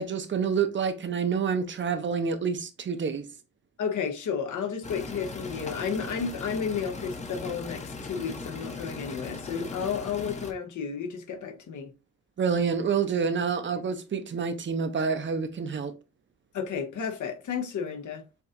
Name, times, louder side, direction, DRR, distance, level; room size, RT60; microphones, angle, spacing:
voice 1, 0.0-3.2 12.4-15.9, right 6 dB, 40° right, 0.6 m, -28 dB
voice 2, 3.8-11.9 16.5-18.3, left 6 dB, 80° left, 1.0 m, -32 dB
sound 1, 4.8-10.5, left 3 dB, 25° left, 0.7 m, -38 dB
7.0 x 2.8 x 2.5 m
wide cardioid pair, 165°, 30 cm